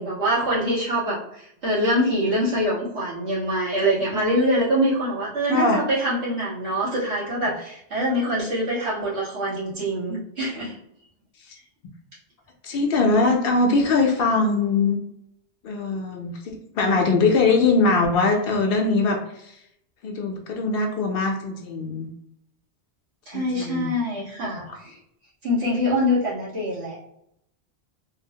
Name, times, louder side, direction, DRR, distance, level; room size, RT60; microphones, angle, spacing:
voice 1, 0.0-10.7 23.3-25.0 25.4-27.0, equal, 75° right, -8 dB, 1.6 m, -24 dB
voice 2, 5.5-5.8 12.6-15.0 15.6-19.2 19.4-19.5 20.0-22.1 23.3-23.9 24.4-24.8, left 3 dB, 65° left, 3 dB, 0.7 m, -22 dB
3.6 x 2.0 x 2.7 m, 0.74 s
omnidirectional pair, 1.1 m